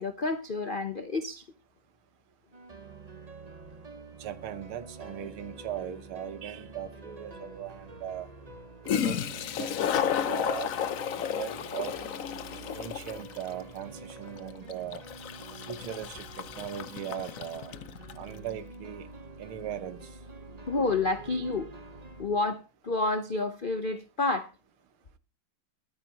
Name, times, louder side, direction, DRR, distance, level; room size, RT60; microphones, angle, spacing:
voice 1, 0.0-1.5 20.7-21.7 22.2-24.5, left 3 dB, 85° left, 0.4 m, -29 dB
sound 1, 2.5-22.3, right 3 dB, 30° right, 0.8 m, -47 dB
voice 2, 4.2-8.3 9.0-10.7 11.2-11.9 12.7-15.0 15.7-17.7 18.2-19.1 19.4-20.1, right 10 dB, 85° right, 2.0 m, -39 dB
Toilet flush, 6.8-6.9 8.6-8.7 8.9-18.2, left 8 dB, 65° left, 0.8 m, -33 dB
22.5 x 9.2 x 2.9 m
omnidirectional pair, 2.3 m